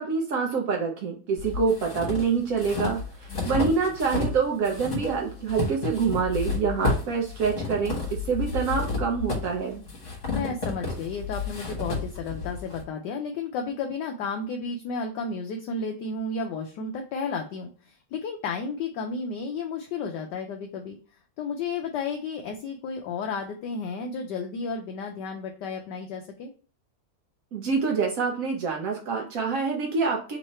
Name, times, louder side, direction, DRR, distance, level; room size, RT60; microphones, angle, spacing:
voice 1, 0.0-8.0 8.2-9.8 27.5-30.4, right 5 dB, 80° right, 0 dB, 0.7 m, -26 dB
sound 1, 1.4-4.4 4.6-12.8, left 3 dB, 40° left, 1.6 m, -31 dB
voice 2, 3.3-3.8 10.3-21.0 21.4-26.5, left 4 dB, 75° left, 3 dB, 1.0 m, -33 dB
3.7 x 3.1 x 4.2 m, 0.39 s
omnidirectional pair, 2.3 m